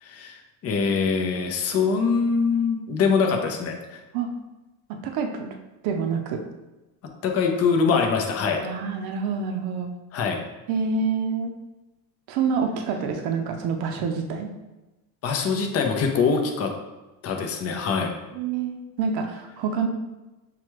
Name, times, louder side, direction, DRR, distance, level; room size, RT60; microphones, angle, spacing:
voice 1, 0.0-4.0 7.2-8.6 10.1-10.4 15.2-16.7 17.2-18.1, left 5 dB, 40° left, 3 dB, 0.6 m, -23 dB
voice 2, 4.9-5.5 5.8-6.4 8.5-9.9 10.7-11.5 12.3-14.5 18.3-19.9, right 5 dB, 75° right, 4 dB, 0.6 m, -27 dB
5.8 x 2.3 x 3.0 m, 1.1 s
cardioid pair, 120°, 40 cm